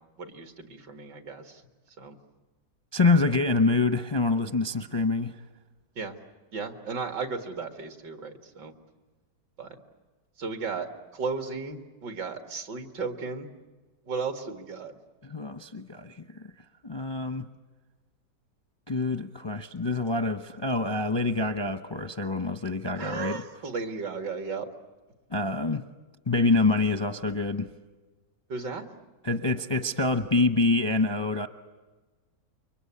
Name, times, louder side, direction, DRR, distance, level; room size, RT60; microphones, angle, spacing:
voice 1, 0.2-1.6 2.0-2.2 6.0-6.2 6.5-8.7 9.6-9.8 10.4-13.5 14.1-14.9 23.0-24.7 28.5-28.9, right 4 dB, 80° right, 7 dB, 2.6 m, -35 dB
voice 2, 2.9-5.4 15.2-16.5 16.8-17.5 18.9-23.4 25.3-25.9 26.3-27.7 29.2-31.5, left 3 dB, 30° left, 10 dB, 0.5 m, -26 dB
29.0 x 24.0 x 8.5 m, 1.3 s
omnidirectional pair, 1.9 m